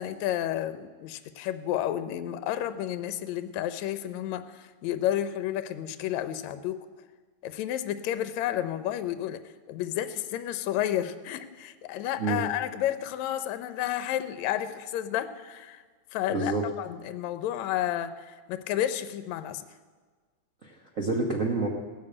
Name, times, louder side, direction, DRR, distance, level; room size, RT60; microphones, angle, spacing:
voice 1, 0.0-6.9 7.4-9.4 9.7-15.8 16.1-19.6, left 11 dB, 75° left, 11 dB, 1.9 m, -31 dB
voice 2, 16.3-16.6 20.6-21.7, right 3 dB, 75° right, -1 dB, 0.7 m, -28 dB
16.5 x 6.9 x 8.5 m, 1.4 s
omnidirectional pair, 3.4 m